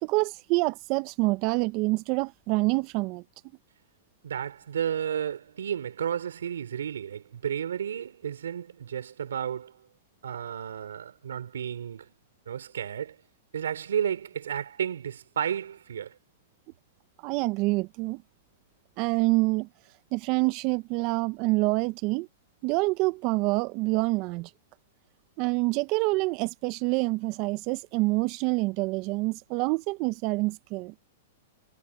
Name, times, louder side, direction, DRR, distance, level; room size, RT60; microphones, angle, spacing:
voice 1, 0.0-3.2 17.2-18.2 19.0-19.7 20.1-22.3 22.6-24.5 25.4-30.9, right 24 dB, 45° right, 1.2 m, -26 dB
voice 2, 4.2-9.8 10.2-12.1 12.5-13.2 13.5-16.2, right 9 dB, 80° right, 3.7 m, -32 dB
hypercardioid pair, 120°, 0 cm